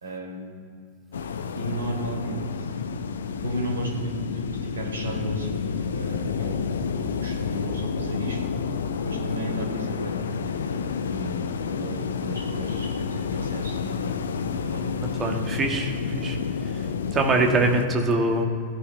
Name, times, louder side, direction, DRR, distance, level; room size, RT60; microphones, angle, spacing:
voice 1, 0.0-0.7 1.5-2.7 3.4-6.6 6.9-8.4 9.0-10.1 11.1-11.4 11.7-14.9, right 1 dB, 70° right, 0 dB, 3.3 m, -34 dB
sound 1, 1.1-17.9, left 6 dB, 65° left, 0.7 m, -30 dB
voice 2, 15.2-16.4 17.1-18.4, right 2 dB, 25° right, 2 dB, 1.9 m, -23 dB
16.0 x 9.8 x 4.1 m, 2.3 s
figure-of-eight pair, 90°, 0 cm